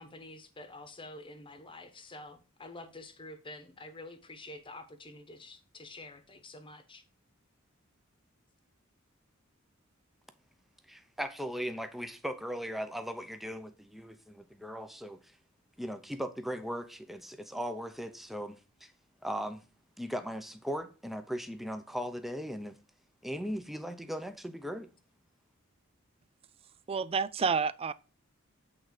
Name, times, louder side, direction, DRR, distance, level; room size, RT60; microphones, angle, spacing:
voice 1, 0.0-7.0, left 2 dB, 25° left, 1.1 m, -48 dB
voice 2, 10.9-15.2 15.8-18.9 19.2-19.6 20.0-22.8 23.2-24.9, equal, ahead, 0.7 m, -38 dB
voice 3, 26.9-27.9, right 5 dB, 30° right, 0.4 m, -29 dB
8.5 x 3.8 x 6.4 m
head